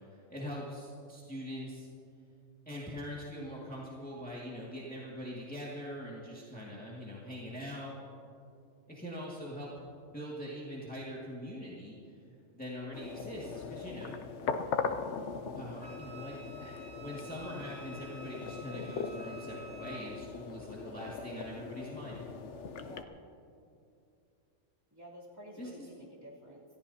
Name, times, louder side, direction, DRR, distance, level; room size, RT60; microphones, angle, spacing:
voice 1, 0.1-1.9 2.7-8.0 8.9-9.7 10.1-11.9 12.5-14.1 15.5-22.2 25.6-25.9, equal, 5° left, -6 dB, 2.1 m, -43 dB
sound 1, 12.9-23.0, left 5 dB, 70° left, 1.0 m, -40 dB
Wind instrument woodwind instrument, 15.8-20.0, right 1 dB, 45° right, 4.8 m, -51 dB
voice 2, 22.7-23.1 24.9-26.6, equal, 15° right, -7 dB, 3.1 m, -51 dB
27.0 x 14.5 x 2.8 m, 2.5 s
omnidirectional pair, 1.3 m